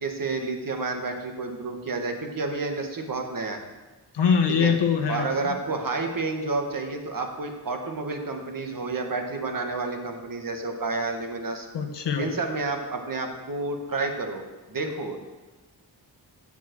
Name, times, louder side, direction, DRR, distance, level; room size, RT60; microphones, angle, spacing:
voice 1, 0.0-3.6 4.5-4.7 5.1-11.7 12.2-14.4 14.7-15.2, right 3 dB, 50° right, 4 dB, 1.5 m, -30 dB
voice 2, 4.1-5.5 11.7-12.3, left 6 dB, 85° left, 5 dB, 1.0 m, -23 dB
7.6 x 7.3 x 7.8 m, 1.2 s
wide cardioid pair, 105°, 41 cm